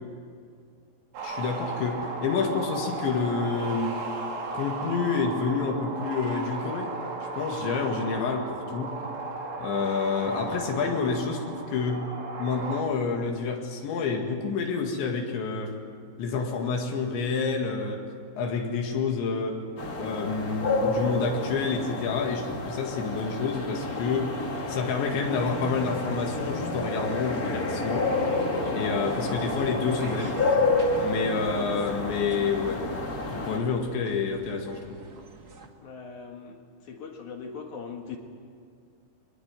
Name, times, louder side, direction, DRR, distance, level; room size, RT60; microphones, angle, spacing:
sound 1, 1.1-12.8, right 3 dB, 70° right, 5.2 m, -35 dB
voice 1, 1.2-4.1 4.5-6.9 7.3-8.9 9.6-12.0 12.4-15.7 16.2-18.1 18.4-19.6 20.0-24.4 24.7-28.1 28.7-30.4 31.0-32.8 33.3-35.0, left 5 dB, 80° left, 2 dB, 4.4 m, -28 dB
sound 2, 19.8-33.6, left 2 dB, 35° left, 1.4 m, -29 dB
sound 3, 28.0-35.7, right 3 dB, 45° right, 1.2 m, -45 dB
voice 2, 35.8-38.2, left 5 dB, 55° left, 3 dB, 2.4 m, -40 dB
23.5 x 21.0 x 9.2 m, 2.2 s
omnidirectional pair, 5.1 m